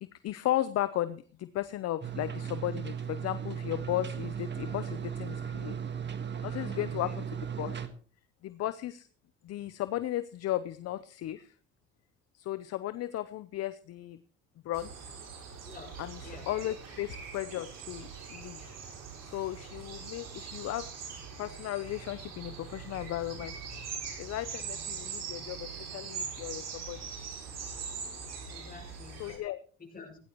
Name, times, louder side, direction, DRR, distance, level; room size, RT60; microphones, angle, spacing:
voice 1, 0.2-5.8 6.4-7.8 8.4-9.1 9.4-11.5 12.3-14.2 14.6-15.1 16.0-18.8 19.2-20.9 21.4-23.6 24.2-27.0 29.2-29.6, left 14 dB, 55° left, 0.7 m, -35 dB
sound 1, 2.0-7.9, right 7 dB, 40° right, 1.6 m, -36 dB
voice 2, 6.8-7.2 15.6-16.5 28.5-29.3 29.8-30.2, left 4 dB, 30° left, 6.3 m, -49 dB
sound 2, 14.7-29.4, right 6 dB, 60° right, 5.4 m, -42 dB
16.5 x 16.0 x 3.1 m
supercardioid pair, 75°, 29 cm